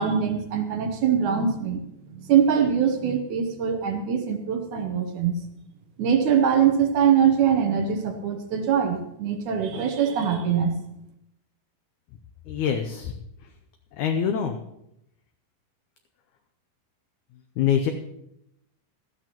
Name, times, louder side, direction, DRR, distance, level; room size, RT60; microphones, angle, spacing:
voice 1, 0.0-1.8 2.2-5.3 6.0-10.8, right 8 dB, 70° right, 6 dB, 2.1 m, -23 dB
voice 2, 12.5-13.1 14.0-14.6 17.6-17.9, left 8 dB, 75° left, 6 dB, 1.8 m, -24 dB
16.5 x 13.0 x 3.0 m, 0.81 s
omnidirectional pair, 4.1 m